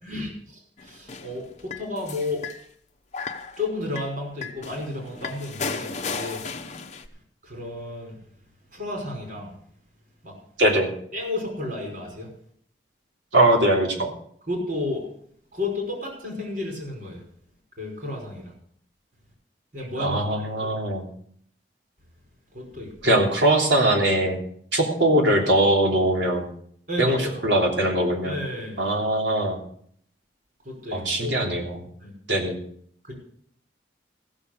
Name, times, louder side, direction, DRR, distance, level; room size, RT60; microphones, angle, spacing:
voice 1, 0.0-2.4 3.6-6.4 7.4-8.2 8.7-9.5 10.2-10.4 11.1-12.3 14.5-15.1 15.5-17.2 17.8-18.5 19.7-20.8 22.5-23.2 26.9-27.4 28.2-28.9 30.6-31.5 32.0-32.1 33.1-33.2, left 2 dB, 50° right, 0 dB, 5.3 m, -32 dB
sound 1, 0.8-2.6 3.1-3.7 4.0-4.1 4.4-7.1, left 5 dB, 40° left, 0.9 m, -34 dB
voice 2, 10.6-10.9 13.3-14.1 20.0-21.0 23.0-24.4 24.7-26.5 27.0-28.3 28.8-29.6 30.9-31.8 32.3-32.6, right 1 dB, 85° right, 0 dB, 3.1 m, -21 dB
15.0 x 7.2 x 6.6 m, 0.63 s
head